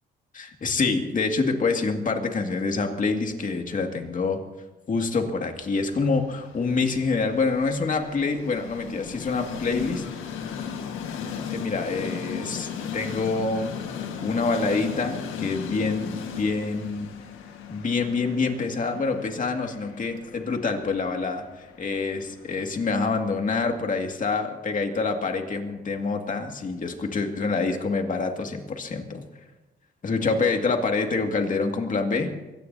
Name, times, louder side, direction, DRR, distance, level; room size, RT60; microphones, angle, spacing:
voice 1, 0.3-4.4 4.9-10.1 11.5-13.8 14.0-16.1 16.4-17.1 17.7-21.5 21.8-29.2 30.0-32.3, left 4 dB, 40° left, 4 dB, 2.2 m, -26 dB
Train, 5.6-23.6, left 7 dB, 85° left, 1.7 m, -37 dB
23.5 x 17.5 x 2.8 m, 1.1 s
cardioid pair, 90°, 20 cm